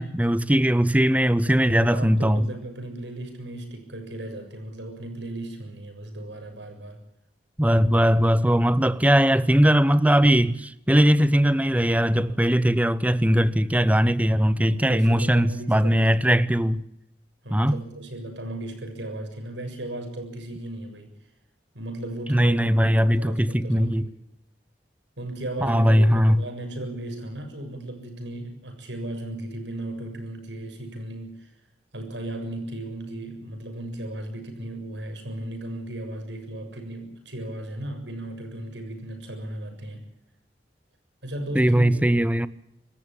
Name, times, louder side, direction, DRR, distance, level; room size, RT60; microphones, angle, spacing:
voice 1, 0.0-2.5 7.6-16.8 17.5-17.8 22.3-24.0 25.6-26.4 41.5-42.5, equal, 10° right, 0.8 m, -20 dB
voice 2, 1.4-7.0 14.7-16.1 17.4-21.1 21.7-22.7 23.0-24.1 25.2-31.5 31.9-40.1 41.2-42.2, right 1 dB, 85° right, 7.1 m, -36 dB
25.5 x 14.5 x 8.9 m
head